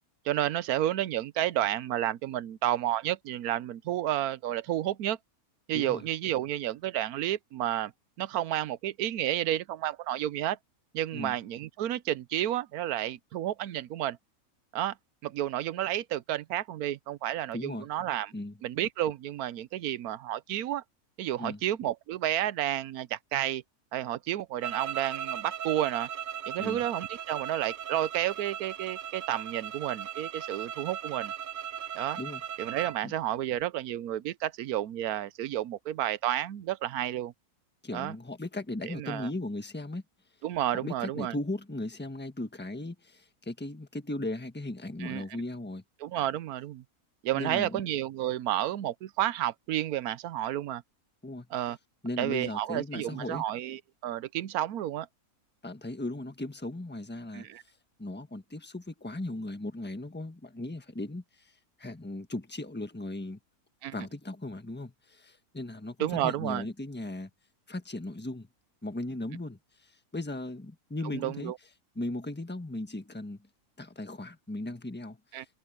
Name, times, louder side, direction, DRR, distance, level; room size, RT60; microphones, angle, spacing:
voice 1, 0.2-5.2 5.7-7.9 8.2-10.6 10.9-14.2 14.7-14.9 15.2-18.3 18.6-20.8 21.2-23.6 23.9-26.1 26.5-31.3 31.9-32.2 32.6-37.3 37.9-38.1 38.9-39.3 40.4-41.3 45.0-45.2 46.0-46.8 47.2-50.8 51.5-51.8 52.2-55.1 57.3-57.6 63.8-63.9 66.0-66.7 71.1-71.5 75.3-75.4, right 12 dB, 80° right, 1.2 m, -31 dB
voice 2, 17.5-17.9 18.3-18.6 21.4-21.6 26.6-26.8 32.1-32.4 33.0-33.1 37.8-40.0 40.7-45.8 47.3-47.8 51.2-51.5 52.0-53.4 55.6-57.5 58.0-61.5 61.8-63.4 63.9-67.3 67.7-68.5 68.8-71.5 71.9-73.5 73.8-75.2, left 2 dB, 5° left, 1.2 m, -37 dB
sound 1, 24.6-33.0, right 9 dB, 60° right, 0.5 m, -38 dB
omnidirectional pair, 1.6 m